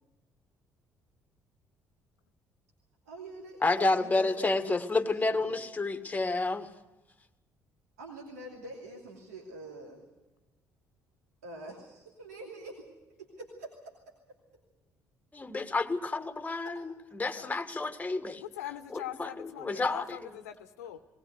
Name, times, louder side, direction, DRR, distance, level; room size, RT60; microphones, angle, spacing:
voice 1, 3.1-5.6 8.0-10.0 11.4-12.8 13.2-13.7 16.6-16.7 19.7-19.9, right 2 dB, 75° right, -1 dB, 2.8 m, -45 dB
voice 2, 3.6-6.7 15.3-18.4 18.9-20.1, left 3 dB, 20° left, 9 dB, 1.6 m, -30 dB
voice 3, 18.4-21.0, left 12 dB, 75° left, 10 dB, 1.0 m, -42 dB
19.5 x 19.5 x 8.1 m, 1.1 s
figure-of-eight pair, 45°, 9 cm